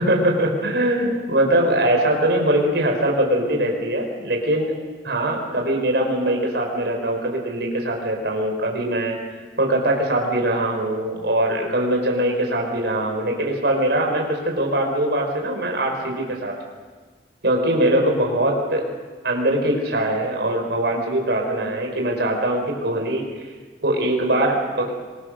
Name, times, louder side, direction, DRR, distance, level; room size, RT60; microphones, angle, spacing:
voice 1, 0.0-4.7 5.0-9.2 9.6-16.5 17.4-18.9 19.2-23.3 23.8-24.9, right 1 dB, 70° right, 1 dB, 4.5 m, -22 dB
26.0 x 21.0 x 6.5 m, 1.4 s
head